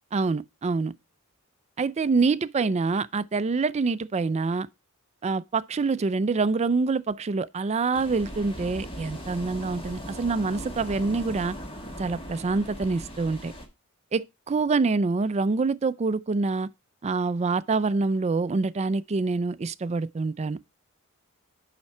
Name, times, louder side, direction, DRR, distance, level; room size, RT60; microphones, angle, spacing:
voice 1, 0.1-0.9 1.8-4.7 5.2-11.6 12.0-13.5 14.1-16.7 17.0-20.6, right 4 dB, 30° right, 0.4 m, -26 dB
sound 1, 7.9-13.7, equal, 25° left, 1.5 m, -39 dB
7.0 x 5.8 x 4.2 m
head